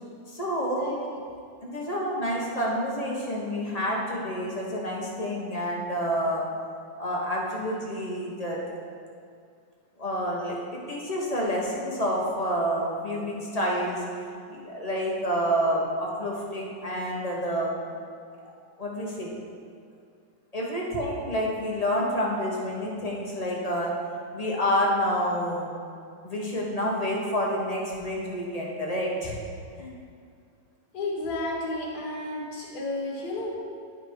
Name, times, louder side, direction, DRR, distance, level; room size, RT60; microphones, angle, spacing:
voice 1, 0.3-0.9 1.6-6.5 7.0-8.8 10.0-14.0 14.5-17.7 18.8-19.3 20.5-23.9 24.3-25.7 26.2-29.4 29.7-29.9, equal, 25° left, -4 dB, 1.0 m, -28 dB
voice 2, 0.8-1.2 30.9-33.5, left 2 dB, 60° left, -6 dB, 1.9 m, -32 dB
9.9 x 5.2 x 4.7 m, 2.3 s
omnidirectional pair, 2.0 m